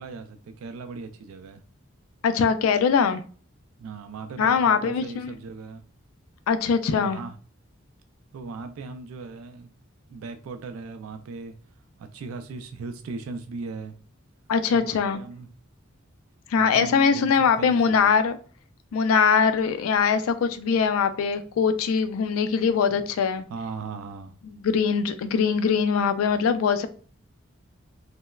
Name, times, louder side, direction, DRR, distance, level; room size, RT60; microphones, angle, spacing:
voice 1, 0.0-1.6 3.8-5.8 6.9-7.3 8.3-9.7 10.1-11.5 12.0-14.0 14.7-15.5 16.6-18.1 22.9-23.1 23.5-24.3, right 4 dB, 85° right, 0.3 m, -37 dB
voice 2, 2.2-3.2 4.4-5.3 6.5-7.2 14.5-15.2 16.5-18.4 18.9-23.4 24.4-26.9, left 6 dB, 85° left, 0.3 m, -22 dB
3.0 x 2.0 x 2.2 m
head